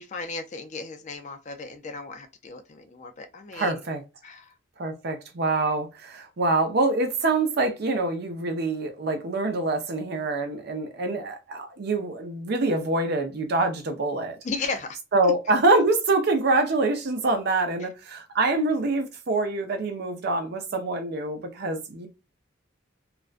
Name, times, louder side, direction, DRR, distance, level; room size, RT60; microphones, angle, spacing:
voice 1, 0.0-3.8 4.2-4.5 14.4-15.0 15.2-15.3 17.8-17.9, left 3 dB, 35° left, 0.3 m, -35 dB
voice 2, 3.5-4.0 4.8-14.4 15.1-22.1, right 2 dB, 55° right, 0.6 m, -25 dB
2.4 x 2.1 x 2.4 m
head